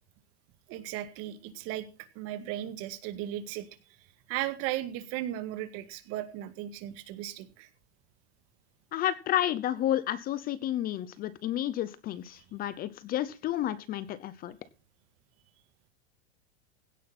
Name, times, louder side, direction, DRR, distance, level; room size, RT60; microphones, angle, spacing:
voice 1, 0.7-1.9 2.2-3.7 4.3-7.7, right 13 dB, 45° right, 11 dB, 1.9 m, -36 dB
voice 2, 8.9-14.5, left 12 dB, 25° left, 17 dB, 0.8 m, -31 dB
16.5 x 10.0 x 4.3 m, 0.32 s
supercardioid pair, 150°, 33 cm